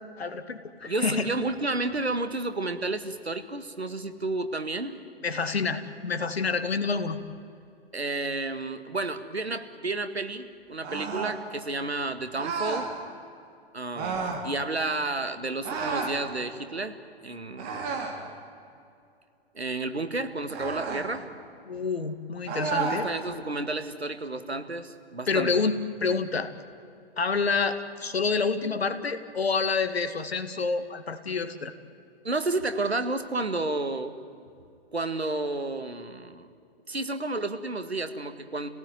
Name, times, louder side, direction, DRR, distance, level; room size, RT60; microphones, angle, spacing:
voice 1, 0.2-1.3 5.2-7.2 21.7-23.1 25.3-25.8 26.0-26.5 27.2-31.7, left 4 dB, 80° left, 10 dB, 2.2 m, -28 dB
voice 2, 0.8-5.0 7.9-12.9 13.7-18.3 19.5-21.3 22.8-25.6 32.2-34.2 34.9-36.5 36.9-38.7, right 2 dB, 90° right, 9 dB, 1.9 m, -31 dB
sound 1, 10.8-11.4 12.4-12.9 13.9-14.5 15.6-16.2 17.6-18.2 20.5-21.1 22.5-23.1, right 5 dB, 30° right, 4.0 m, -31 dB
29.0 x 17.5 x 9.7 m, 2.5 s
figure-of-eight pair, 115°, 31 cm